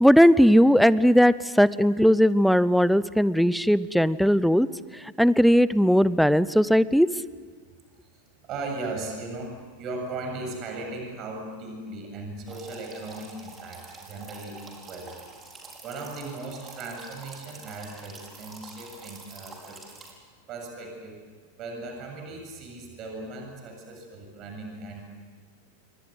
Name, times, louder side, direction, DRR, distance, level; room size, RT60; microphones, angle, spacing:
voice 1, 0.0-4.7 5.2-7.1, equal, ahead, 18 dB, 0.7 m, -18 dB
voice 2, 8.0-15.1 15.8-19.8 20.5-21.2 21.6-25.0, right 2 dB, 35° right, 3 dB, 7.4 m, -37 dB
sound 1, 12.5-20.1, right 3 dB, 20° right, 5.3 m, -46 dB
28.0 x 24.0 x 8.1 m, 1.5 s
figure-of-eight pair, 90°, 0 cm